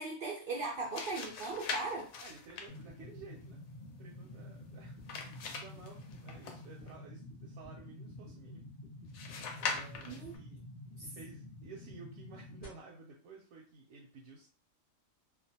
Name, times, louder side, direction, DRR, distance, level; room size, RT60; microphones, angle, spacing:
voice 1, 0.0-2.1 10.0-10.3 11.0-11.1, right 3 dB, 65° right, -2 dB, 0.5 m, -38 dB
sound 1, 0.6-6.9 9.1-10.4, left 5 dB, 90° left, 1.0 m, -43 dB
voice 2, 2.2-3.6 4.0-8.6 9.6-10.6 10.9-14.5, right 4 dB, 90° right, -2 dB, 1.0 m, -54 dB
sound 2, 2.7-12.7, left 1 dB, 50° left, 0.7 m, -49 dB
2.5 x 2.1 x 2.7 m, 0.39 s
omnidirectional pair, 1.4 m